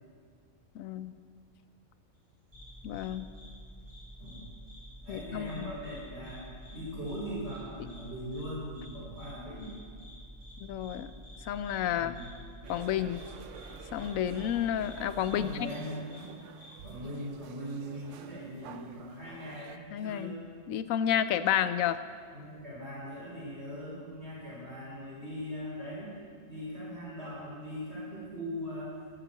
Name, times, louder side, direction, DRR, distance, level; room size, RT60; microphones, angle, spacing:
voice 1, 0.7-1.1 2.8-3.3 5.1-5.7 10.7-11.1 11.5-12.1 12.7-13.2 13.9-15.7 19.9-20.4 20.7-22.0, left 10 dB, 90° left, 13 dB, 1.0 m, -30 dB
sound 1, 2.5-15.6, right 1 dB, 25° left, 0.4 m, -49 dB
sound 2, 2.5-2.7 2.9-3.1 3.3-3.5 3.9-4.4 4.7-4.8 5.1-5.6 5.8-6.0 6.2-6.4 6.6-6.8 7.1-7.2 7.5-7.6 7.9-8.0 8.3-8.4 8.8-8.9 9.2-9.3 9.6-9.7 10.0-10.1 10.4-10.5 10.8-10.9 11.2-11.4 11.6-11.8 12.2-12.3 12.7-12.8 13.1-13.3 13.5-13.7 13.9-14.1 14.4-14.5 14.8-14.9 15.2-15.3 15.6-15.8 16.1-16.2 16.6-16.7, left 1 dB, 15° right, 3.9 m, -54 dB
voice 2, 5.0-6.4 6.7-9.7 11.9-12.3 15.3-16.3 16.8-20.4 22.3-26.1 26.5-29.0, equal, 55° right, -7 dB, 3.7 m, -40 dB
sound 3, 12.6-19.8, right 8 dB, 70° right, 0.9 m, -50 dB
13.0 x 7.7 x 7.6 m, 2.1 s
omnidirectional pair, 1.4 m